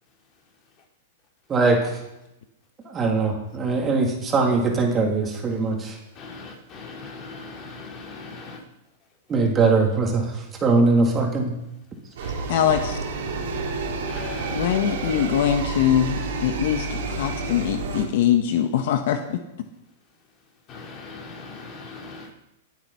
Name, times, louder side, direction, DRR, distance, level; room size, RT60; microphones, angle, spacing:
voice 1, 1.5-2.0 2.8-6.0 9.3-11.5, right 3 dB, 20° right, 1 dB, 3.0 m, -21 dB
voice 2, 6.2-8.6 12.2-12.3 14.1-14.7 20.7-22.3, left 3 dB, 35° left, -1 dB, 3.9 m, -40 dB
sound 1, 12.2-18.0, right 3 dB, 75° right, 3.9 m, -29 dB
voice 3, 12.5-13.0 14.5-19.4, left 10 dB, 65° left, 7 dB, 1.3 m, -22 dB
21.0 x 7.9 x 5.7 m, 0.89 s
hypercardioid pair, 130°, 0 cm